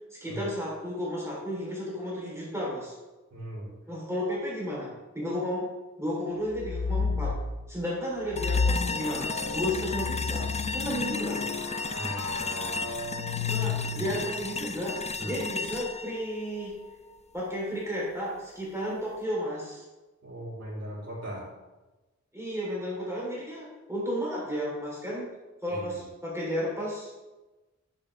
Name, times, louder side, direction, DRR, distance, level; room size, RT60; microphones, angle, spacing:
voice 1, 0.1-2.9 3.9-5.7 6.0-7.4 7.7-11.5 13.4-16.8 17.3-19.8 22.3-25.3 25.6-27.1, equal, 10° right, -6 dB, 3.4 m, -33 dB
voice 2, 3.3-3.7 11.9-12.9 13.6-14.1 15.2-15.4 20.2-21.5 25.7-26.0, right 1 dB, 60° right, -5 dB, 3.5 m, -39 dB
sound 1, 6.5-7.5 8.3-14.3, left 4 dB, 65° left, 1.2 m, -32 dB
sound 2, 8.3-17.4, left 4 dB, 25° left, 0.4 m, -34 dB
10.0 x 8.5 x 3.3 m, 1.1 s
wide cardioid pair, 80°, 29 cm